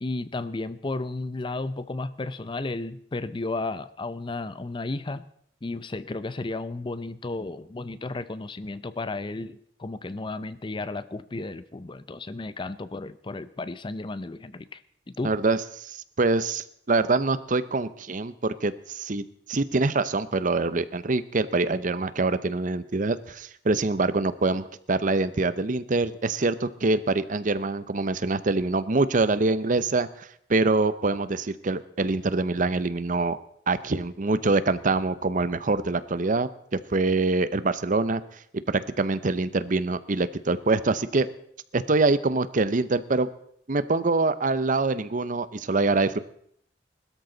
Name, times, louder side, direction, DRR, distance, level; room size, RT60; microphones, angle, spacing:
voice 1, 0.0-5.3 5.6-14.8 15.1-15.3, left 2 dB, 25° left, 15 dB, 0.5 m, -33 dB
voice 2, 15.2-33.4 33.7-38.2 38.7-41.3 41.7-43.3 43.7-46.2, right 3 dB, 45° right, 15 dB, 0.7 m, -25 dB
20.5 x 13.0 x 3.9 m, 0.65 s
head